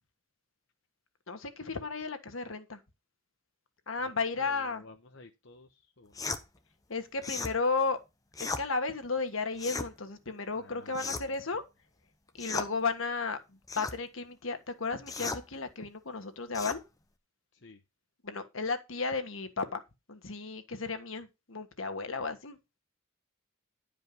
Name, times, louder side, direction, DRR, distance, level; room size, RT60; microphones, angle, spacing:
voice 1, 1.3-2.8 3.9-4.8 6.9-8.0 8.4-11.6 12.4-13.4 13.7-16.8 18.2-19.8 20.1-22.6, left 4 dB, 75° left, 1.5 m, -34 dB
voice 2, 4.4-6.3 10.6-11.4 17.5-17.8, left 3 dB, 60° left, 0.9 m, -53 dB
sound 1, 6.2-6.4 7.2-7.6 8.3-8.7 9.6-9.9 10.9-11.4 12.4-12.7 13.7-14.0 15.1-15.4 16.5-16.8, left 3 dB, 15° left, 0.9 m, -36 dB
11.0 x 5.1 x 5.3 m
head